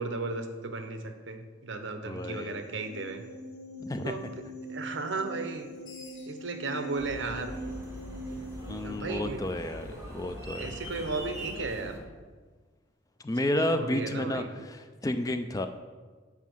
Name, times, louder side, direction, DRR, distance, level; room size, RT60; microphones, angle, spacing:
voice 1, 0.0-3.2 4.0-4.3 4.7-5.7 6.3-7.5 8.3-8.4 8.8-9.4 10.6-12.0 13.4-14.5, right 3 dB, 70° right, 7 dB, 0.8 m, -35 dB
voice 2, 2.1-2.6 3.8-4.2 8.7-10.7 13.2-15.7, left 1 dB, 20° left, 8 dB, 0.3 m, -31 dB
sound 1, 2.2-8.9, equal, 40° left, 1.8 m, -42 dB
Screech, 5.5-8.7, left 1 dB, 90° left, 1.5 m, -54 dB
sound 2, 7.0-12.0, equal, 15° right, 1.6 m, -42 dB
7.3 x 4.6 x 6.1 m, 1.4 s
head